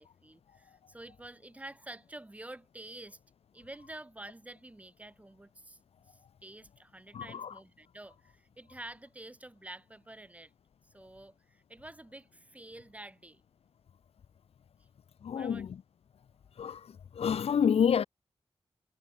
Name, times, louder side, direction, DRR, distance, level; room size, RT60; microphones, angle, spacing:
voice 1, 0.0-3.2 3.5-5.8 6.1-10.5 10.8-13.4 14.8-14.9 15.3-15.6, right 1 dB, 15° right, 5.5 m, -49 dB
voice 2, 7.1-7.5 15.2-15.8 16.6-18.0, left 7 dB, 90° left, 0.6 m, -29 dB
wide cardioid pair, 160°, 10 cm